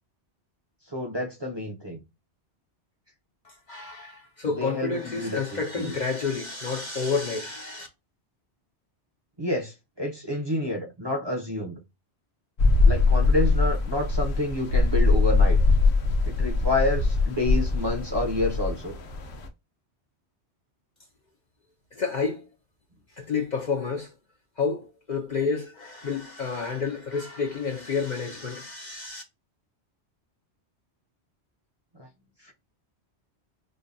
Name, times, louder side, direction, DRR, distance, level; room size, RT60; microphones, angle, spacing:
voice 1, 0.9-2.0 4.6-5.9 9.4-11.8 12.9-15.6 16.3-18.9 31.9-32.1 32.4-32.5, left 1 dB, 25° right, 0.7 m, -29 dB
voice 2, 3.4-7.9 21.9-22.5 23.1-24.1 24.6-29.2, left 5 dB, 50° left, 0.6 m, -30 dB
sound 1, 12.6-19.5, left 3 dB, 75° left, 0.9 m, -22 dB
5.1 x 2.2 x 2.6 m
omnidirectional pair, 1.1 m